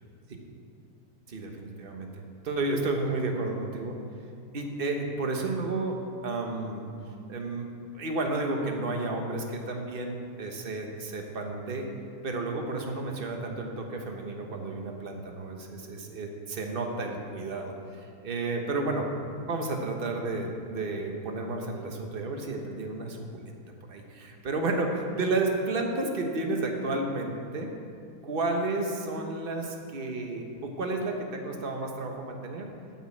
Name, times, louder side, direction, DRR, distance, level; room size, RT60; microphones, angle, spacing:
voice 1, 1.3-4.0 4.5-6.9 7.3-7.7 7.9-11.9 12.2-17.7 18.2-19.1 19.5-23.5 23.9-27.7 28.2-32.7, right 2 dB, 35° right, 2 dB, 1.0 m, -32 dB
8.8 x 7.3 x 8.7 m, 2.4 s
omnidirectional pair, 2.3 m